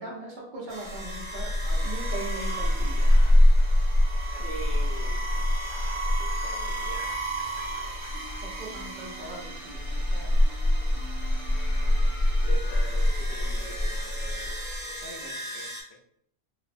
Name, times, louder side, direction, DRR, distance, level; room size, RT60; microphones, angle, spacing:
voice 1, 0.0-3.4 7.8-8.0 8.4-10.5 15.0-15.3, right 2 dB, 55° right, -3 dB, 0.7 m, -40 dB
sound 1, 0.7-15.8, left 1 dB, 90° right, 0.9 m, -25 dB
voice 2, 4.3-8.4 12.4-14.5 15.2-15.7, right 1 dB, 80° left, -1 dB, 0.9 m, -44 dB
sound 2, 4.3-5.1 7.7-15.5, right 4 dB, 15° right, 0.8 m, -52 dB
sound 3, 6.6-15.2, left 1 dB, 50° left, 0.7 m, -48 dB
2.5 x 2.0 x 2.4 m, 0.67 s
omnidirectional pair, 1.1 m